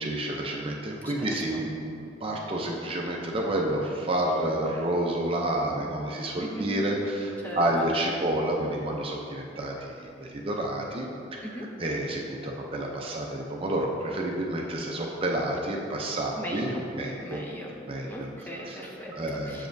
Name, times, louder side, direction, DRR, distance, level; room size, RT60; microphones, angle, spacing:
voice 1, 0.0-11.4 11.8-17.4 17.9-18.3 18.7-18.8 19.1-19.7, right 1 dB, 30° right, -1 dB, 0.5 m, -29 dB
voice 2, 1.0-1.6 6.4-6.7 7.4-7.9 11.4-11.7 16.3-16.8 17.2-17.7 18.1-19.7, equal, 10° left, -2 dB, 0.7 m, -38 dB
7.1 x 6.9 x 2.6 m, 2.7 s
head